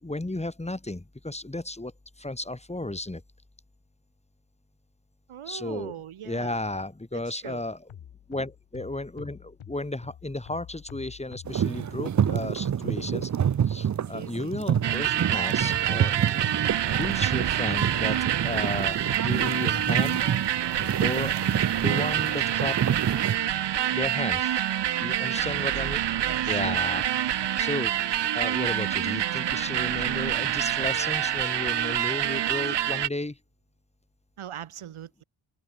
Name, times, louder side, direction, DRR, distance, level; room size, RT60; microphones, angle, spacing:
voice 1, 0.0-1.9 2.2-3.2 5.5-5.9 6.2-7.9 8.3-13.3 13.6-16.2 17.0-20.3 21.0-21.4 21.8-22.8 23.9-24.6 25.0-26.0 26.5-33.4, left 2 dB, 15° left, 4.3 m, -34 dB
voice 2, 5.3-6.6 7.1-7.6 25.5-25.7 26.2-26.8 34.4-35.2, right 10 dB, 75° right, 3.0 m, -41 dB
sound 1, 7.9-13.9 14.7-21.6, left 9 dB, 70° left, 2.8 m, -47 dB
sound 2, 11.5-23.4, right 9 dB, 35° right, 0.6 m, -28 dB
sound 3, 14.8-33.1, right 11 dB, 55° right, 0.9 m, -27 dB
open air
cardioid pair, 115°, 50 cm